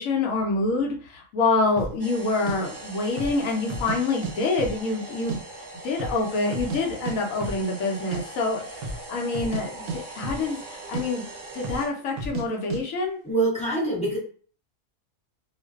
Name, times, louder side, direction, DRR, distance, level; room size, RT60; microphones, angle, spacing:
voice 1, 0.0-5.4 5.8-11.2 11.5-13.2, left 3 dB, 70° left, 1 dB, 0.9 m, -26 dB
sound 1, 1.8-2.0 2.5-2.6 3.1-3.4 3.7-4.3 4.6-5.4 5.7-5.8 6.0-6.8 7.1-7.2 7.4-7.6 7.9-8.2 8.7-9.0 9.3-9.6 9.9-10.7 10.9-11.1 11.6-11.9 12.2-12.5 12.7-12.8, right 3 dB, 85° right, 1.1 m, -32 dB
sound 2, 2.0-11.9, right 2 dB, 25° right, 0.6 m, -41 dB
voice 2, 13.2-14.2, right 2 dB, 10° left, -6 dB, 0.3 m, -24 dB
2.4 x 2.2 x 2.3 m, 0.43 s
omnidirectional pair, 1.5 m